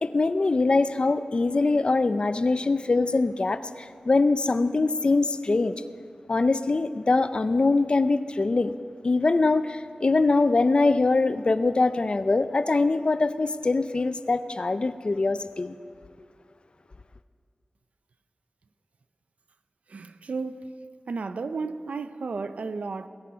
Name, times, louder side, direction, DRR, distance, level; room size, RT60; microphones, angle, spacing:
voice 1, 0.0-5.8 6.3-8.7 9.0-15.8, left 3 dB, 45° left, 0.5 m, -23 dB
voice 2, 19.9-20.7 21.1-23.1, right 4 dB, 85° right, 0.6 m, -33 dB
21.5 x 9.8 x 5.6 m
wide cardioid pair, 85°, 2 cm